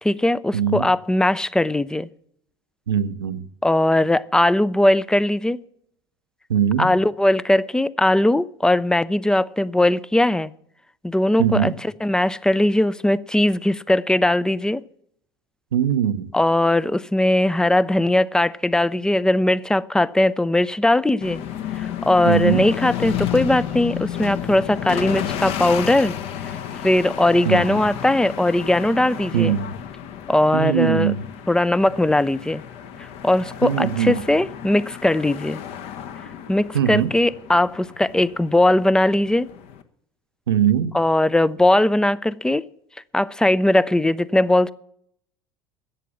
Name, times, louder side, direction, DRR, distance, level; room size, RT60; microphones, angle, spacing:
voice 1, 0.0-2.1 3.6-5.6 6.8-10.5 11.0-14.8 16.3-21.4 21.8-26.2 26.4-29.5 30.3-31.1 31.5-32.6 33.0-35.6 36.5-39.5 40.9-42.7 43.1-44.7, left 1 dB, 5° left, 0.4 m, -19 dB
voice 2, 0.5-0.9 2.9-3.4 6.5-6.9 11.4-11.7 15.7-16.3 22.2-22.6 27.4-27.8 29.3-29.7 30.5-31.2 33.6-34.2 36.7-37.1 40.5-40.9, right 9 dB, 75° right, 0.6 m, -21 dB
sound 1, 21.2-39.8, left 10 dB, 50° left, 1.0 m, -32 dB
13.5 x 8.3 x 7.3 m
figure-of-eight pair, 70°, 12 cm